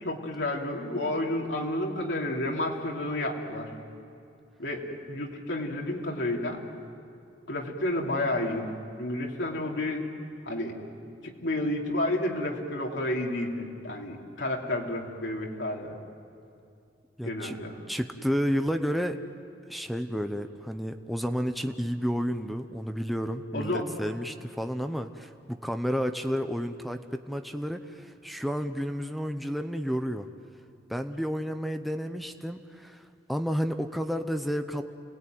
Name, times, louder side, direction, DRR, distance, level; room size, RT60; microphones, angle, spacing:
voice 1, 0.0-3.7 4.6-6.6 7.5-8.7 9.0-10.1 10.4-10.7 11.2-16.0 17.2-17.8 23.5-23.8, left 1 dB, 85° left, -1 dB, 3.1 m, -31 dB
voice 2, 17.2-17.6 17.9-19.2 19.7-30.3 30.9-34.8, equal, ahead, 7 dB, 0.8 m, -31 dB
29.5 x 19.5 x 9.3 m, 2.5 s
head